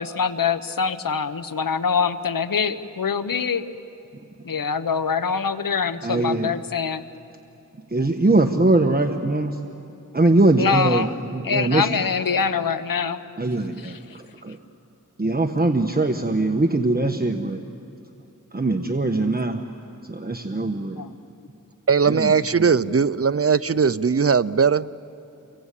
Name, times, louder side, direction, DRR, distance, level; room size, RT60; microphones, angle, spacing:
voice 1, 0.0-3.6 4.4-7.0 10.6-11.1 11.4-13.2 13.8-14.0 20.9-21.1, left 6 dB, 85° left, 12 dB, 1.0 m, -24 dB
voice 2, 6.0-6.5 7.9-9.6 10.1-11.9 13.4-14.6 15.2-17.6 18.5-19.6 20.0-21.0 22.1-22.6, right 2 dB, 30° right, 5 dB, 1.3 m, -22 dB
voice 3, 21.9-24.9, right 6 dB, 45° right, 16 dB, 0.7 m, -19 dB
30.0 x 23.5 x 8.4 m, 2.6 s
cardioid pair, 40°, 33 cm